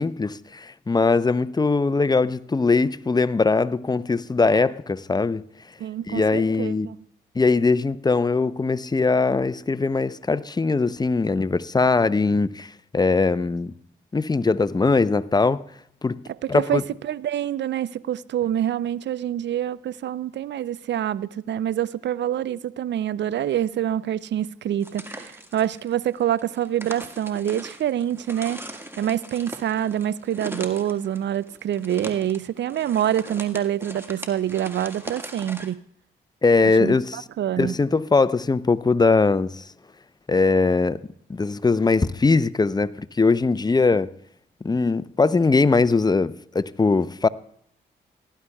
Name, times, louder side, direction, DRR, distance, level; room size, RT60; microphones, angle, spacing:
voice 1, 0.0-5.4 6.1-6.9 7.4-13.7 14.1-15.6 16.0-16.2 16.5-16.8 36.4-37.2 37.6-39.6 40.3-41.0 41.3-44.1 44.6-47.3, left 3 dB, 20° left, 0.6 m, -21 dB
voice 2, 5.8-7.0 16.4-28.6 29.0-35.8 36.6-37.7, right 11 dB, 60° right, 0.5 m, -26 dB
sound 1, 24.8-35.7, right 1 dB, 10° right, 1.8 m, -40 dB
18.0 x 11.0 x 2.3 m
hypercardioid pair, 40°, 21 cm